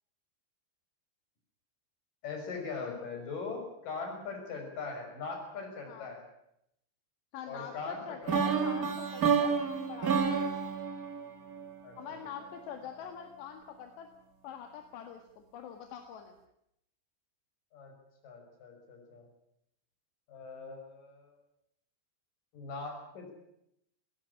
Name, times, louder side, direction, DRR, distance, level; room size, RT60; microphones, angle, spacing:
voice 1, 2.2-6.2 7.5-8.6 11.8-12.0 17.7-17.9 18.2-19.3 20.3-21.4 22.5-23.3, left 4 dB, 50° left, 2 dB, 7.5 m, -41 dB
voice 2, 7.3-9.6 9.9-10.5 12.0-14.1 14.4-16.4, left 8 dB, 75° left, 5 dB, 3.9 m, -45 dB
sound 1, 8.3-12.2, right 6 dB, 45° right, 1.2 m, -30 dB
20.5 x 17.5 x 10.0 m, 0.78 s
omnidirectional pair, 5.0 m